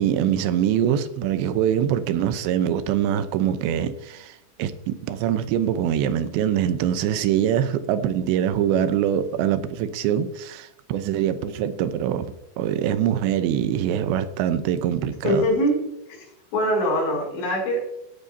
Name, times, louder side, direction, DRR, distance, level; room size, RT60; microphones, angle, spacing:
voice 1, 0.0-12.3 12.6-15.5, right 10 dB, 85° right, 3.1 m, -23 dB
voice 2, 15.2-16.3 16.5-17.8, equal, 80° left, 5.8 m, -23 dB
17.5 x 10.5 x 2.8 m
omnidirectional pair, 5.0 m